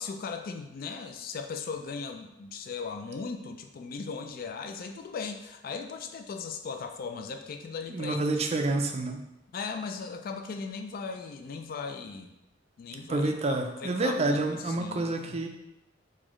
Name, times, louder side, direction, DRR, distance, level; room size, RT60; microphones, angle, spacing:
voice 1, 0.0-8.2 8.6-8.7 9.5-12.3 12.8-15.1, left 5 dB, 50° left, 6 dB, 0.3 m, -38 dB
voice 2, 7.9-9.2 13.0-15.5, right 2 dB, 35° right, 4 dB, 0.4 m, -28 dB
4.0 x 2.6 x 3.0 m, 0.90 s
head